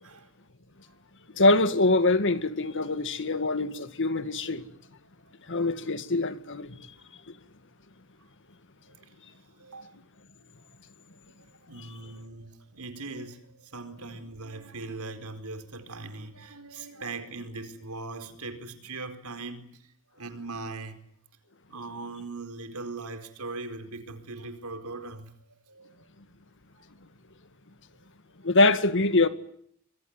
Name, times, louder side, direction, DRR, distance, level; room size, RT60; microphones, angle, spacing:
voice 1, 1.4-4.7 5.5-6.8 28.4-29.3, left 2 dB, 60° left, 2.0 m, -24 dB
voice 2, 8.8-10.0 11.1-21.0 21.7-26.1, right 3 dB, 80° right, 4.5 m, -40 dB
26.5 x 23.5 x 9.6 m
head